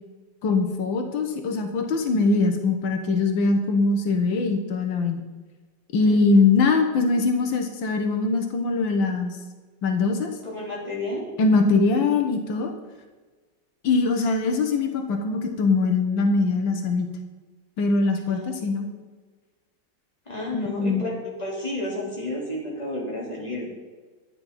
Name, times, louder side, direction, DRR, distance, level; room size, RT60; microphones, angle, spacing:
voice 1, 0.4-5.3 5.9-9.4 9.8-10.4 11.4-12.7 13.8-17.1 17.8-18.9 20.5-21.1, left 3 dB, 85° left, 5 dB, 1.8 m, -22 dB
voice 2, 6.0-6.4 10.4-11.3 18.3-18.8 20.2-21.1 21.4-23.7, left 1 dB, 20° left, -4 dB, 3.4 m, -31 dB
11.5 x 8.9 x 5.5 m, 1.3 s
omnidirectional pair, 2.0 m